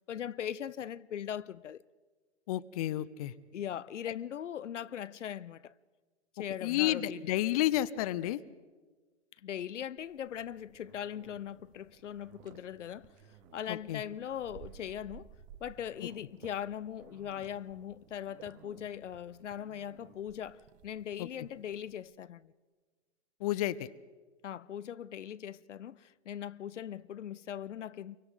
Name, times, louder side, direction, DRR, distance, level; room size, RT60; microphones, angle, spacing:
voice 1, 0.1-1.8 3.5-5.7 6.4-7.3 9.4-13.1 13.5-15.3 15.6-22.5 24.4-28.2, left 9 dB, 85° left, 0.6 m, -40 dB
voice 2, 2.5-3.3 6.6-8.4 13.7-14.0 21.2-21.3 23.4-23.9, left 14 dB, 35° left, 0.5 m, -31 dB
sound 1, 10.0-22.1, right 9 dB, 20° right, 0.7 m, -58 dB
sound 2, 10.3-20.4, right 7 dB, 40° right, 3.1 m, -61 dB
29.0 x 24.0 x 3.9 m
hypercardioid pair, 135°, 35 cm